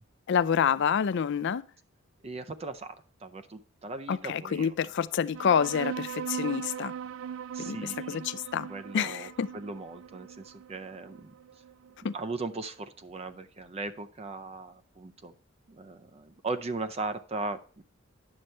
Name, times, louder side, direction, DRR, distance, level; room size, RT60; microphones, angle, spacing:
voice 1, 0.3-1.6 4.1-6.9 7.6-8.7 8.9-9.5 12.0-12.1, left 7 dB, 60° left, 0.4 m, -28 dB
voice 2, 2.2-3.0 3.2-4.9 7.5-8.4 8.7-11.3 12.1-15.3 15.7-17.8, right 3 dB, 30° right, 0.5 m, -38 dB
sound 1, 5.3-12.3, right 8 dB, 90° right, 0.4 m, -39 dB
9.8 x 6.5 x 4.4 m
head